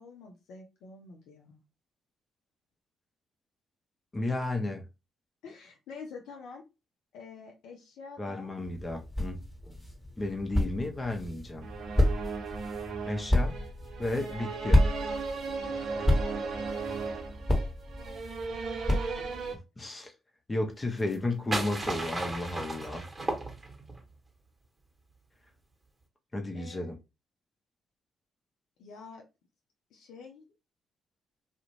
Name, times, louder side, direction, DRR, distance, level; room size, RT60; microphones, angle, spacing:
voice 1, 0.0-1.6 5.4-6.6 7.1-8.5 14.1-15.0 15.4-16.7 19.3-19.5 26.5-26.9 28.8-29.2 29.9-30.5, left 4 dB, 70° left, 0.5 m, -48 dB
voice 2, 4.1-4.9 8.2-9.4 10.2-11.7 13.1-13.6 14.0-14.8 19.8-20.1 20.5-23.0 26.3-27.0, left 2 dB, 30° left, 0.7 m, -33 dB
sound 1, 8.6-19.5, left 1 dB, 10° left, 1.1 m, -30 dB
sound 2, 11.6-19.5, right 4 dB, 60° right, 0.5 m, -36 dB
sound 3, 21.0-24.0, right 2 dB, 25° right, 1.1 m, -35 dB
2.4 x 2.1 x 3.0 m
hypercardioid pair, 45°, 0 cm